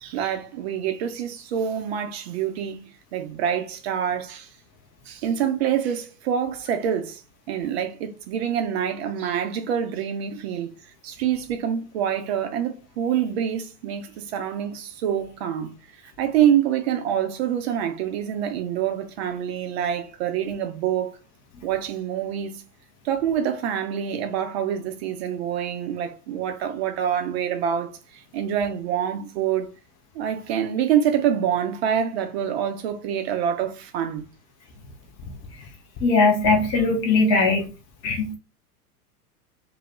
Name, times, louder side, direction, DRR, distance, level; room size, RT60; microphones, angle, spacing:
voice 1, 0.0-2.8 3.1-4.5 5.1-7.2 7.5-10.7 11.0-15.7 16.2-21.2 21.6-22.6 23.0-29.7 30.1-34.3, right 9 dB, 45° right, 0.5 m, -26 dB
voice 2, 36.0-37.6 38.0-38.3, left 3 dB, 15° left, 0.3 m, -19 dB
2.3 x 2.0 x 3.0 m
figure-of-eight pair, 90°, 45 cm